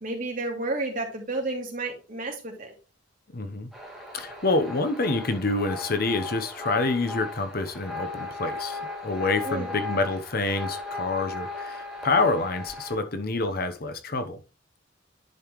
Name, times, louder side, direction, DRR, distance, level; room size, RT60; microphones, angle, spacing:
voice 1, 0.0-2.7 9.4-9.7, right 2 dB, 45° right, 2.7 m, -31 dB
voice 2, 3.3-3.7 4.1-14.4, left 3 dB, 50° left, 0.9 m, -27 dB
sound 1, 3.7-13.0, left 3 dB, ahead, 2.5 m, -37 dB
10.5 x 5.5 x 3.1 m
head